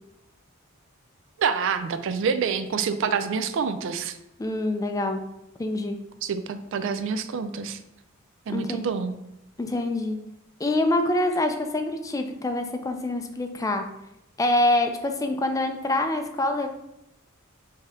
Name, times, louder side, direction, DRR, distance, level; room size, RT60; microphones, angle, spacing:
voice 1, 1.4-4.2 6.2-7.8 8.5-9.1, right 6 dB, 65° right, 11 dB, 0.4 m, -27 dB
voice 2, 4.4-5.2 5.6-6.0 8.5-8.9 9.6-10.2 10.6-13.8 14.4-16.7, left 1 dB, 15° left, 5 dB, 0.4 m, -25 dB
5.0 x 2.8 x 3.6 m, 0.86 s
head